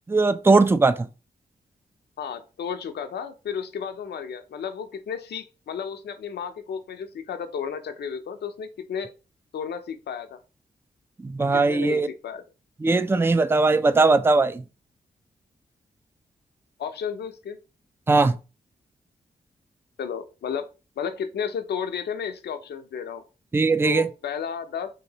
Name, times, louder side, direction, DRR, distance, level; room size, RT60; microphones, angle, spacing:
voice 1, 0.1-1.1 11.2-12.1 12.8-14.6 18.1-18.4 23.5-24.1, right 3 dB, 15° right, 0.3 m, -19 dB
voice 2, 2.2-9.1 9.5-10.4 11.5-12.4 16.8-17.6 20.0-20.7 21.0-23.2 23.8-24.9, left 7 dB, 70° left, 0.5 m, -33 dB
3.2 x 2.7 x 2.8 m
supercardioid pair, 40°, 18 cm